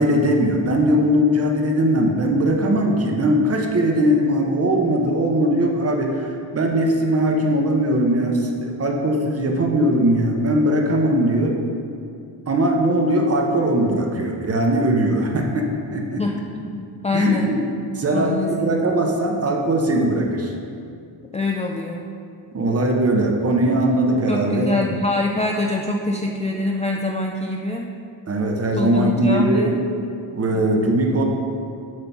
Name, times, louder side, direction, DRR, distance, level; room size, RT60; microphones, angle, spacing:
voice 1, 0.0-11.6 12.5-16.2 17.1-17.6 17.9-20.5 22.5-24.8 28.3-29.7 30.3-31.2, right 1 dB, 35° right, 1 dB, 1.0 m, -20 dB
voice 2, 16.2-17.5 18.1-18.7 21.3-22.0 24.3-27.9 28.8-29.7 30.5-30.8, left 2 dB, 15° left, 0 dB, 0.3 m, -24 dB
7.5 x 3.9 x 5.8 m, 2.4 s
cardioid pair, 115°, 44 cm